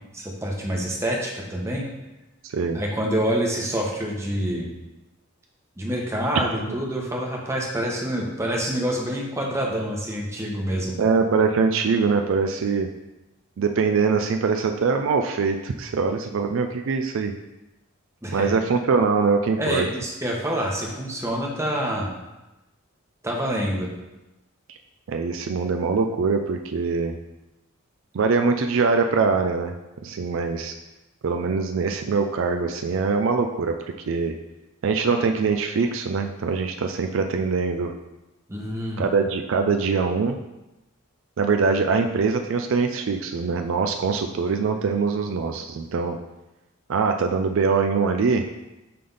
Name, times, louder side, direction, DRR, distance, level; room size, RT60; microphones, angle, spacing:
voice 1, 0.1-1.8 2.7-4.7 5.8-11.0 18.2-18.5 19.6-22.1 23.2-23.9 38.5-39.0, equal, 15° right, -1 dB, 0.9 m, -27 dB
voice 2, 2.4-2.8 11.0-12.9 13.6-17.3 18.3-19.9 25.1-27.1 28.1-29.7 30.0-30.7 31.2-34.3 34.8-37.9 39.0-40.4 41.4-46.2 46.9-48.4, right 4 dB, 65° right, 5 dB, 0.4 m, -23 dB
5.8 x 3.4 x 5.4 m, 1.0 s
head